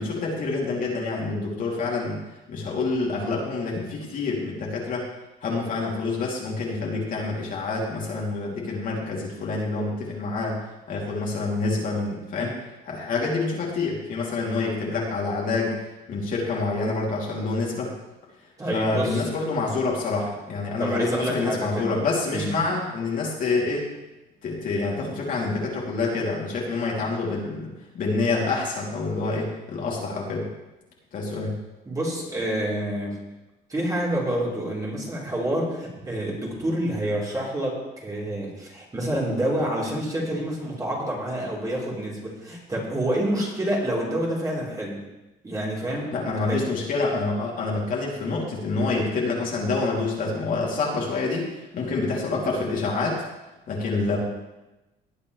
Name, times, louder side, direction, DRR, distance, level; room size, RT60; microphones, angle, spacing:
voice 1, 0.0-2.2 2.5-5.1 5.4-10.6 10.9-12.6 12.8-15.8 16.1-17.9 18.7-23.9 24.4-30.5 31.1-31.6 46.1-53.2 53.7-54.2, left 3 dB, 55° left, -3 dB, 2.9 m, -27 dB
voice 2, 18.6-19.5 20.8-21.9 22.3-22.5 31.9-33.2 33.7-45.0 45.4-46.1 46.4-46.6, right 1 dB, 20° right, -4 dB, 3.8 m, -28 dB
18.5 x 8.5 x 3.3 m, 1.0 s
cardioid pair, 110°, 17 cm